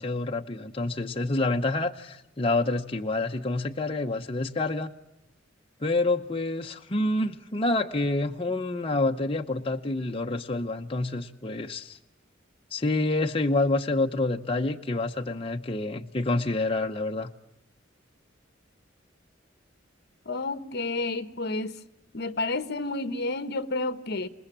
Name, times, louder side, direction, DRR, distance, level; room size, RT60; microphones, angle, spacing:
voice 1, 0.0-4.9 5.8-12.0 12.7-17.3, left 2 dB, 30° left, 0.8 m, -28 dB
voice 2, 20.2-21.8 22.1-24.3, left 2 dB, 55° left, 1.2 m, -30 dB
28.0 x 20.5 x 7.3 m
head